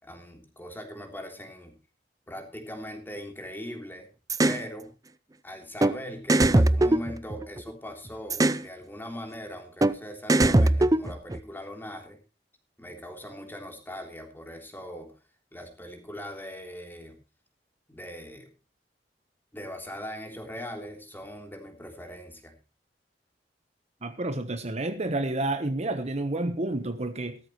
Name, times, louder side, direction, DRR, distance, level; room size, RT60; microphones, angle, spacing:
voice 1, 0.0-1.8 2.3-4.1 4.4-4.9 5.4-12.2 12.8-15.1 15.5-17.2 17.9-18.5 19.5-22.5, equal, 10° left, 3.4 m, -40 dB
sound 1, 4.3-4.6 5.8-5.9 6.3-7.7 8.3-8.6 9.8-9.9 10.3-11.4, right 1 dB, 20° right, 0.6 m, -21 dB
voice 2, 24.0-27.4, right 2 dB, 40° right, 1.2 m, -30 dB
16.0 x 13.5 x 3.2 m
head